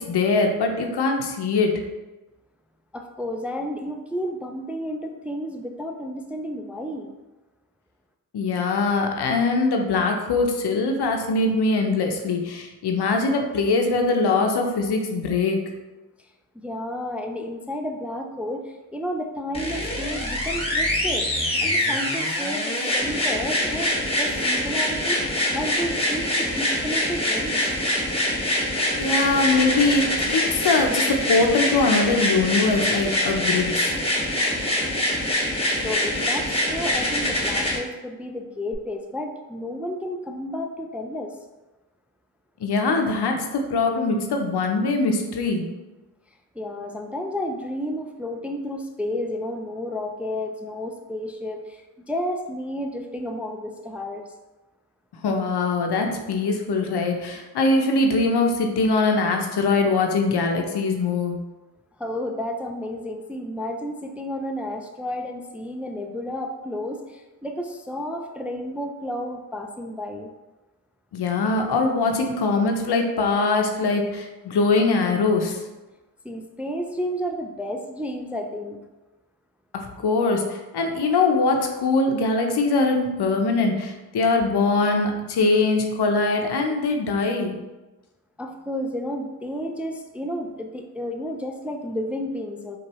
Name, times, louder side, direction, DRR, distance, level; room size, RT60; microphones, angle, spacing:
voice 1, 0.1-1.8 8.3-15.6 29.0-34.0 42.6-45.6 55.2-61.4 71.1-75.6 79.7-87.6, left 3 dB, 75° left, 3 dB, 0.7 m, -22 dB
voice 2, 2.9-7.1 16.2-16.3 16.5-21.3 21.6-27.6 35.8-41.4 46.5-54.3 62.0-70.3 76.2-78.8 88.4-92.8, left 1 dB, 5° right, 3 dB, 0.3 m, -31 dB
sound 1, 19.5-37.8 38.7-38.8, left 1 dB, 15° left, 1.1 m, -24 dB
4.6 x 2.5 x 3.0 m, 1.1 s
cardioid pair, 45°, 40 cm